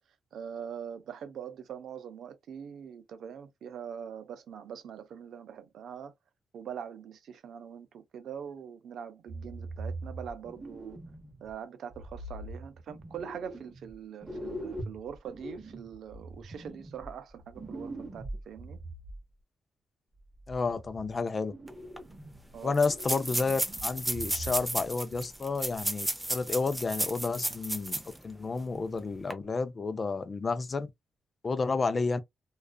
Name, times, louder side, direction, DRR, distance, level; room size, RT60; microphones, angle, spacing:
voice 1, 0.3-6.1 6.5-11.0 11.4-18.8 22.5-22.7, right 8 dB, 75° right, 0.5 m, -43 dB
sound 1, 9.3-11.5 11.9-13.9 14.2-19.2 20.2-21.2 21.5-22.6 22.9-24.9 25.1-25.3 25.8-25.9, right 1 dB, 25° right, 0.9 m, -42 dB
voice 2, 20.5-21.5 22.6-30.9 31.4-32.2, left 4 dB, 35° left, 0.5 m, -31 dB
sound 2, 21.7-21.8 22.0-22.1 22.7-28.2 28.6-28.7 29.2-29.3, right 1 dB, 10° right, 0.5 m, -33 dB
2.4 x 2.3 x 2.3 m
cardioid pair, 95°, 0 cm